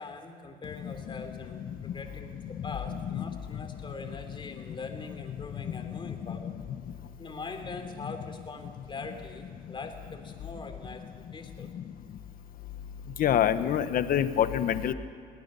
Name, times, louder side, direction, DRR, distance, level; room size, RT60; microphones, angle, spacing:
voice 1, 0.0-6.5 7.2-11.7, left 3 dB, 30° left, 5 dB, 3.2 m, -42 dB
voice 2, 13.2-14.9, left 9 dB, 60° left, 11 dB, 1.1 m, -25 dB
22.5 x 18.5 x 6.9 m, 2.4 s
cardioid pair, 110°, 17 cm